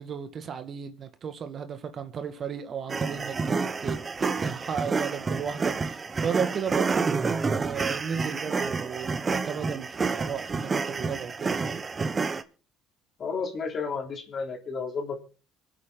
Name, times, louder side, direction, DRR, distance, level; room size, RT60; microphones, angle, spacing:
voice 1, 0.0-11.8, right 7 dB, 45° right, 1.8 m, -34 dB
sound 1, 2.9-12.4, right 4 dB, 30° right, 1.1 m, -29 dB
voice 2, 13.2-15.2, left 5 dB, 45° left, 3.3 m, -32 dB
25.5 x 8.7 x 3.8 m
supercardioid pair, 80°, 0 cm